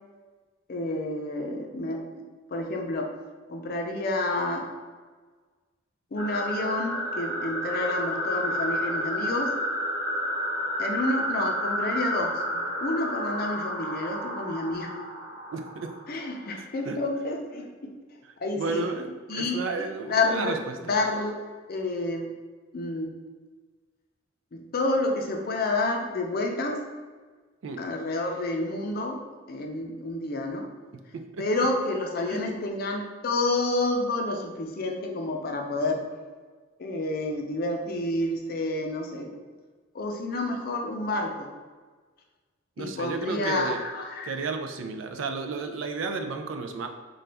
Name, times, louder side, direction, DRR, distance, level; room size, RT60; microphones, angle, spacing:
voice 1, 0.7-2.2 2.5-3.1 3.5-4.7 6.1-9.5 10.8-14.9 16.1-17.9 18.4-18.9 19.3-19.6 20.1-21.4 21.7-22.3 22.7-23.1 24.5-26.8 27.8-29.2 29.5-30.7 31.4-36.0 36.8-39.3 39.9-41.5 42.8-44.3, left 2 dB, 50° left, 2 dB, 0.5 m, -29 dB
sound 1, 6.2-16.5, equal, 20° right, 0.7 m, -31 dB
voice 2, 15.5-15.9 16.6-17.0 18.2-20.8 27.6-27.8 31.1-31.5 32.3-32.5 42.8-43.8 44.2-46.9, right 4 dB, 70° right, 6 dB, 0.4 m, -33 dB
3.8 x 2.3 x 3.3 m, 1.4 s
head